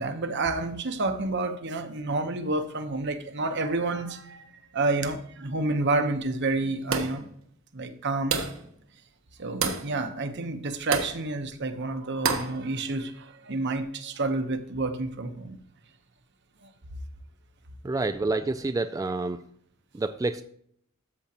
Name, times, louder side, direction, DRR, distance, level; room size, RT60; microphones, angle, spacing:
voice 1, 0.0-7.3 7.7-8.4 9.4-15.6 16.6-16.7, right 2 dB, 60° right, 1.0 m, -29 dB
sound 1, 6.9-7.3 8.3-8.7 9.6-9.9 10.9-11.2 12.2-12.6, right 5 dB, 75° right, 1.2 m, -28 dB
voice 2, 17.8-19.4 19.9-20.4, right 3 dB, 15° right, 0.3 m, -28 dB
13.0 x 7.2 x 2.9 m
head